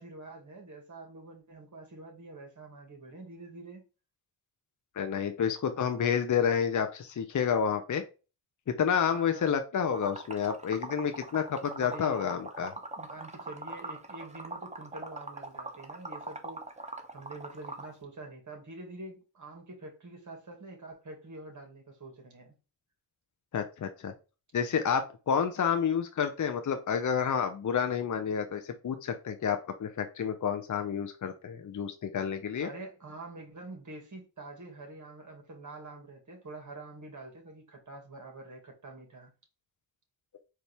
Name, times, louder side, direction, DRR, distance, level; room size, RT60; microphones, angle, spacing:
voice 1, 0.0-3.8 9.1-9.5 11.8-12.4 13.0-22.5 32.6-39.3, right 2 dB, 45° right, 1.9 m, -46 dB
voice 2, 5.0-8.0 8.8-12.7 23.5-24.1 24.5-32.7, left 7 dB, 45° left, 0.7 m, -29 dB
Liquid, 9.9-17.9, right 2 dB, 15° right, 0.8 m, -41 dB
4.5 x 2.6 x 3.3 m
cardioid pair, 55°, 41 cm